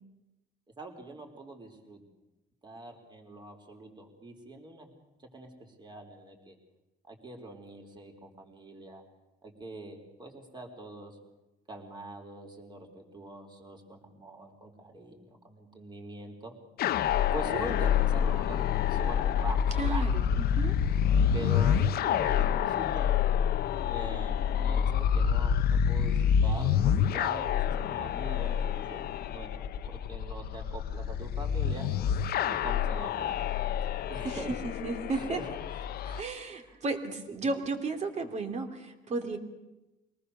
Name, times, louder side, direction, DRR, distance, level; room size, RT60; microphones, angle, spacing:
voice 1, 0.8-2.0 2.6-5.1 5.3-5.5 5.8-6.6 7.0-9.0 9.4-11.2 11.7-16.5 17.3-20.1 21.3-23.1 23.9-31.9 32.4-33.4 34.0-34.6 35.1-36.3 36.6-36.8, right 2 dB, 25° right, 3 dB, 4.2 m, -43 dB
sound 1, 16.8-36.2, left 8 dB, 65° left, 0.8 m, -28 dB
voice 2, 19.8-20.7 34.2-34.4 34.6-35.4 36.2-39.4, right 3 dB, 40° right, 5 dB, 3.0 m, -34 dB
24.5 x 19.0 x 6.9 m, 1.0 s
cardioid pair, 110°, 17 cm